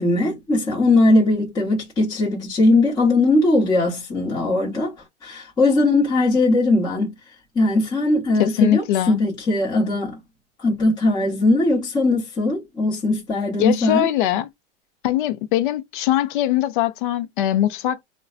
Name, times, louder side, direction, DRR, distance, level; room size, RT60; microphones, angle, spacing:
voice 1, 0.0-4.9 5.2-7.1 7.5-10.2 10.6-14.1, left 2 dB, 10° left, 0.9 m, -19 dB
voice 2, 8.4-9.2 13.6-14.5 15.0-18.0, left 13 dB, 45° left, 0.5 m, -21 dB
3.8 x 2.2 x 2.4 m
hypercardioid pair, 145°, 35 cm